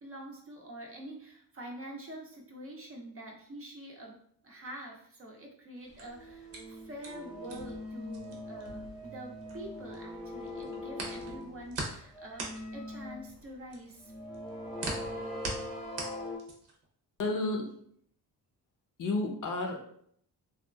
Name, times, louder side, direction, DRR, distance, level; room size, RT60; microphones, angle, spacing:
voice 1, 0.0-4.2 4.4-14.1, right 1 dB, 35° right, 0 dB, 0.5 m, -46 dB
sound 1, 5.8-10.0 10.3-16.8, right 3 dB, 85° right, 0.7 m, -41 dB
sound 2, 6.0-13.3 14.0-16.4, left 1 dB, ahead, 0.7 m, -42 dB
voice 2, 17.2-17.7 19.0-19.8, left 2 dB, 50° left, 2 dB, 0.5 m, -31 dB
2.8 x 2.3 x 2.2 m, 0.66 s
cardioid pair, 90°, 41 cm